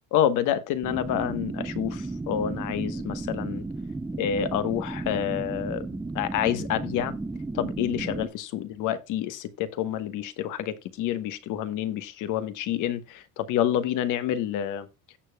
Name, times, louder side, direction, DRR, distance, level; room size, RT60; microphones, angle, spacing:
voice 1, 0.1-3.6 4.2-5.9 6.1-7.1 7.5-14.9, left 10 dB, 75° left, 1.2 m, -28 dB
sound 1, 0.8-8.3, right 2 dB, 5° right, 0.4 m, -34 dB
16.0 x 6.9 x 2.2 m
cardioid pair, 165°, 31 cm